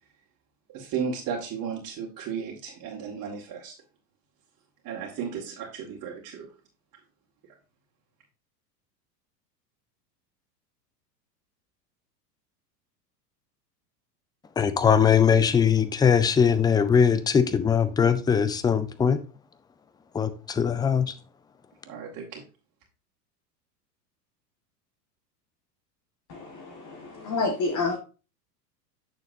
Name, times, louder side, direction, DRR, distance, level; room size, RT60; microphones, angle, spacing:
voice 1, 0.7-3.7 4.8-6.5 21.9-22.4, right 7 dB, 40° right, -3 dB, 2.1 m, -34 dB
voice 2, 14.6-19.2 20.1-21.1, left 7 dB, 10° left, 12 dB, 0.5 m, -21 dB
voice 3, 26.3-28.0, left 3 dB, 35° left, 2 dB, 1.8 m, -29 dB
8.7 x 6.7 x 2.7 m, 0.32 s
hypercardioid pair, 95°, 50 cm